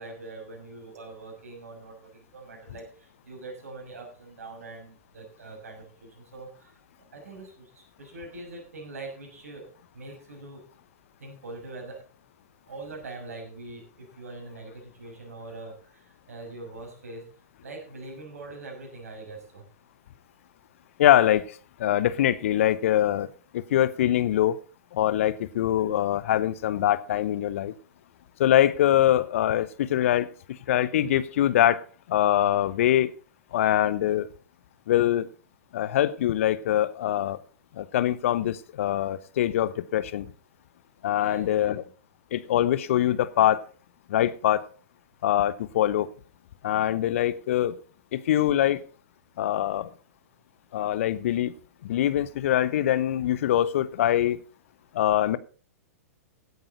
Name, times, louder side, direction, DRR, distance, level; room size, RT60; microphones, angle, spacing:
voice 1, 0.0-6.8 7.1-9.7 9.9-10.6 11.2-12.0 12.7-17.3 17.6-19.6 41.2-41.7, right 2 dB, 65° right, 1 dB, 6.4 m, -43 dB
voice 2, 21.0-23.3 23.5-24.6 24.9-27.7 28.4-33.1 33.5-34.3 34.9-35.3 35.7-37.4 37.7-40.3 41.0-41.8 42.3-43.6 44.1-44.6 45.2-46.1 46.6-47.8 48.1-48.8 49.4-49.9 50.7-51.5 51.8-54.4 54.9-55.4, left 12 dB, 55° left, 17 dB, 1.0 m, -23 dB
16.5 x 9.4 x 4.0 m, 0.39 s
figure-of-eight pair, 105°, 8 cm